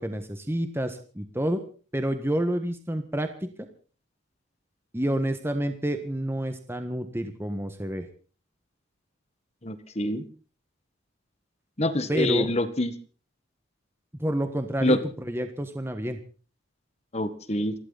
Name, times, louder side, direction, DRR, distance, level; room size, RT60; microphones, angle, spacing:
voice 1, 0.0-1.6 1.9-3.5 4.9-8.1 12.1-12.5 14.2-16.2, right 1 dB, 10° right, 7 dB, 1.5 m, -29 dB
voice 2, 9.6-10.2 11.8-12.9 14.8-15.0 17.1-17.7, left 1 dB, 30° left, 11 dB, 1.5 m, -25 dB
29.0 x 12.0 x 4.1 m, 0.39 s
head